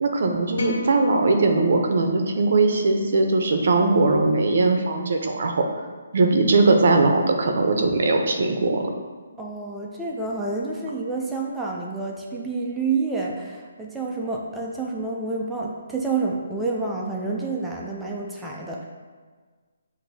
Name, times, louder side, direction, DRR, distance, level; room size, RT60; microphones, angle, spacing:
voice 1, 0.0-5.6 6.1-8.9, right 3 dB, 50° right, 4 dB, 0.5 m, -20 dB
sound 1, 0.5-2.9, right 1 dB, 55° left, 0.6 m, -35 dB
voice 2, 9.4-18.9, right 3 dB, 5° right, -3 dB, 0.3 m, -28 dB
7.7 x 2.6 x 2.7 m, 1.5 s
hypercardioid pair, 175°, 0 cm